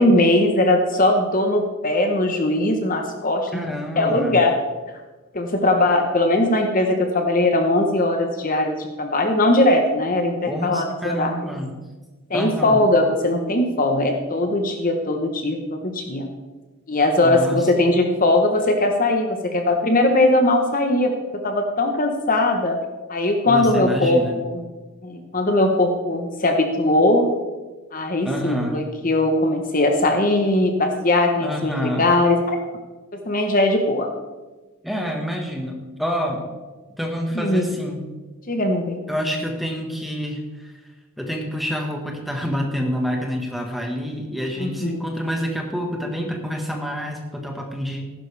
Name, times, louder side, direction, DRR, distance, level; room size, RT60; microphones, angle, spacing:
voice 1, 0.0-3.6 4.0-4.5 5.3-11.3 12.3-16.3 16.9-21.1 21.4-22.8 23.1-24.6 25.0-27.2 27.9-32.6 33.3-34.1 37.3-37.7 38.5-39.0 44.6-45.0, left 2 dB, 40° left, 4 dB, 1.0 m, -20 dB
voice 2, 3.5-4.4 10.5-11.7 12.3-12.8 17.2-17.7 23.5-24.4 28.2-28.8 31.4-32.1 34.8-36.4 37.0-38.1 39.1-40.7 41.2-48.0, equal, ahead, 1 dB, 1.4 m, -27 dB
15.0 x 11.5 x 3.4 m, 1.2 s
head